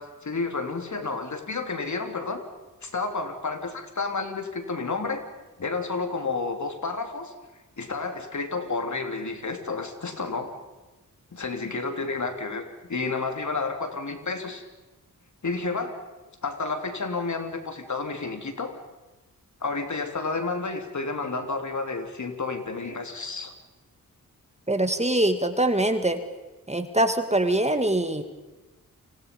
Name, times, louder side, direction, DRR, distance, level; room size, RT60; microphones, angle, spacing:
voice 1, 0.0-2.4 2.8-5.2 5.6-7.3 7.8-10.5 11.3-14.6 15.4-16.0 16.4-18.7 19.6-23.5, left 3 dB, 55° left, 6 dB, 3.2 m, -30 dB
voice 2, 24.7-26.2 26.7-28.2, right 1 dB, 20° right, 8 dB, 2.2 m, -23 dB
29.0 x 25.5 x 5.4 m, 1.1 s
cardioid pair, 60°, 35 cm